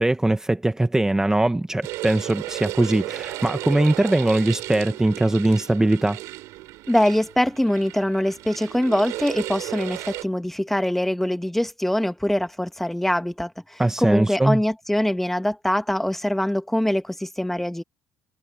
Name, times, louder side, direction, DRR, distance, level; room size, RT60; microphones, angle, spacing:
voice 1, 0.0-6.2 13.8-14.6, right 1 dB, 10° right, 1.2 m, -21 dB
sound 1, 1.8-10.2, right 18 dB, 80° right, 6.3 m, -34 dB
voice 2, 6.9-17.8, left 1 dB, 5° left, 1.8 m, -23 dB
supercardioid pair, 70°, 5 cm